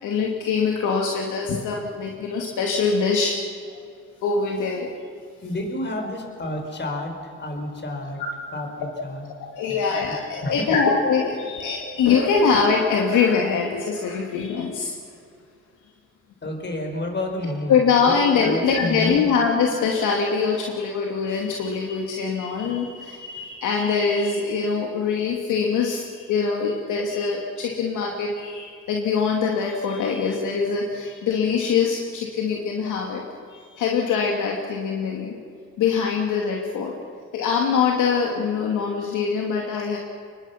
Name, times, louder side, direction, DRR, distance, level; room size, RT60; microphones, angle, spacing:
voice 1, 0.0-3.4 4.2-4.9 9.4-14.9 17.7-33.2 33.5-35.4 35.8-36.9 37.3-40.0, left 5 dB, 80° left, 0 dB, 2.7 m, -23 dB
voice 2, 5.4-8.2 8.5-9.3 9.7-10.2 10.4-10.8 16.4-17.8 18.0-19.3, left 1 dB, 35° left, 3 dB, 5.3 m, -30 dB
25.5 x 21.0 x 6.0 m, 2.3 s
cardioid pair, 90°, 30 cm